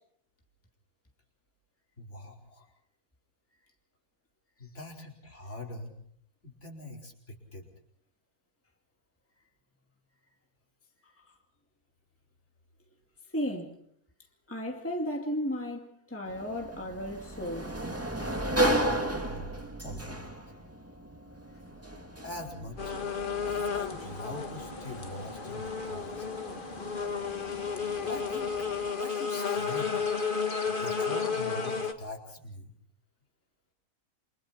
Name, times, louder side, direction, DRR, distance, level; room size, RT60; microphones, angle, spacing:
voice 1, 2.0-2.7 4.6-5.9 6.4-7.6 19.2-20.3 22.2-22.9 23.4-26.3 28.1-28.5 29.0-29.9 30.6-32.7, left 2 dB, 55° left, 5.0 m, -43 dB
voice 2, 13.3-13.7 14.5-17.7 31.0-31.1, equal, 10° left, 2.3 m, -34 dB
Sliding door, 16.3-28.9, right 1 dB, 10° right, 2.1 m, -35 dB
sound 1, 22.8-31.9, left 5 dB, 35° left, 1.8 m, -32 dB
29.0 x 25.5 x 4.4 m
omnidirectional pair, 1.5 m